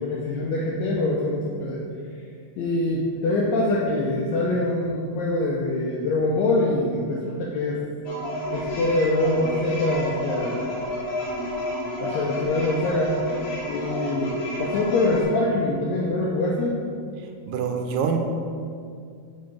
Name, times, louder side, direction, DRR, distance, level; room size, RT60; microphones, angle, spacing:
voice 1, 0.0-1.8 2.6-7.8 8.5-10.7 12.0-13.1 13.7-16.8, left 2 dB, 75° left, -4 dB, 1.6 m, -24 dB
sound 1, 8.0-15.2, left 1 dB, 55° left, 2.5 m, -30 dB
voice 2, 17.5-18.2, right 6 dB, 90° right, 4 dB, 2.3 m, -25 dB
5.7 x 4.9 x 5.1 m, 2.3 s
omnidirectional pair, 3.8 m